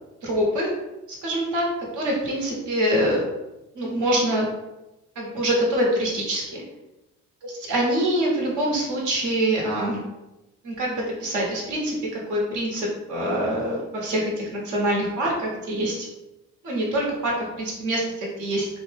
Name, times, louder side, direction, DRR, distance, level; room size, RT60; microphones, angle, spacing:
voice 1, 0.2-0.7 1.2-1.7 1.9-3.2 3.7-4.5 5.2-6.6 7.7-10.0 10.6-11.9 12.3-16.1 16.6-18.7, right 1 dB, 80° right, -3 dB, 1.0 m, -25 dB
2.8 x 2.1 x 3.3 m, 0.99 s
cardioid pair, 90°, 30 cm